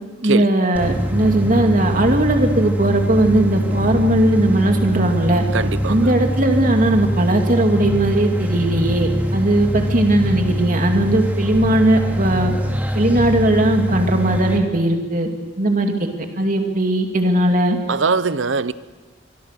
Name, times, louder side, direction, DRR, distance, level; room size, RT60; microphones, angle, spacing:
voice 1, 0.2-5.4 5.9-12.5 12.9-15.3 15.6-15.9 16.4-17.8, right 1 dB, 40° right, 2.7 m, -18 dB
sound 1, 0.7-14.6, equal, 10° right, 3.0 m, -23 dB
voice 2, 5.5-6.1 17.9-18.7, right 4 dB, 70° right, 0.8 m, -21 dB
25.5 x 23.5 x 6.8 m
head